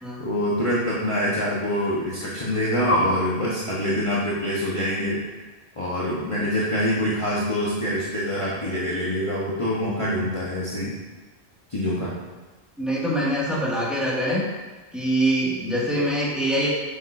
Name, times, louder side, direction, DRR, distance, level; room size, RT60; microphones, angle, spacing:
voice 1, 0.2-5.2 5.8-10.9 11.7-12.1, equal, 30° left, -7 dB, 1.2 m, -25 dB
voice 2, 12.8-14.4 14.9-16.7, right 1 dB, ahead, -7 dB, 2.1 m, -24 dB
9.4 x 7.2 x 2.7 m, 1.2 s
omnidirectional pair, 1.1 m